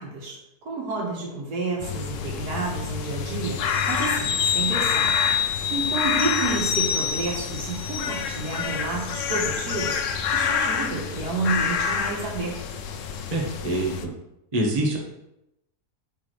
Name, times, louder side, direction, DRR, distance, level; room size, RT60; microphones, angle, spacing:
voice 1, 0.0-5.1 5.7-12.6, right 3 dB, 80° right, -2 dB, 2.0 m, -30 dB
sound 1, 1.8-14.1, left 7 dB, 65° left, 0.8 m, -28 dB
sound 2, 3.7-8.8 9.1-9.3, left 7 dB, 85° left, 1.3 m, -27 dB
voice 2, 13.3-13.9 14.5-15.0, right 1 dB, 25° right, -1 dB, 1.1 m, -24 dB
8.3 x 4.2 x 3.3 m, 0.86 s
omnidirectional pair, 1.6 m